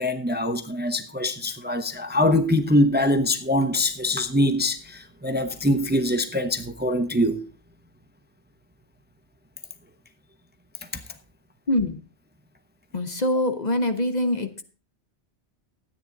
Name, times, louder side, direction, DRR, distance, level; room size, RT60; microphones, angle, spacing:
voice 1, 0.0-7.4 10.9-11.0, left 1 dB, 10° right, 0.8 m, -23 dB
voice 2, 11.7-12.0 12.9-14.5, left 1 dB, 40° left, 1.0 m, -24 dB
13.5 x 9.5 x 3.9 m
omnidirectional pair, 1.2 m